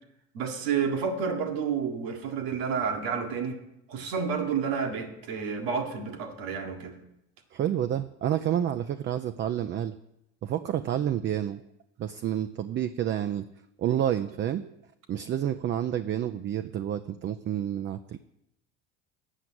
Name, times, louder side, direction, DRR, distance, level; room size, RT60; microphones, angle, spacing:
voice 1, 0.3-3.6 3.9-7.0, right 6 dB, 70° right, 4 dB, 1.6 m, -30 dB
voice 2, 7.5-10.0 10.4-11.6 12.0-13.5 13.8-14.6 15.1-18.2, right 10 dB, 30° right, 9 dB, 0.4 m, -29 dB
8.1 x 5.8 x 7.6 m, 0.84 s
hypercardioid pair, 75°, 37 cm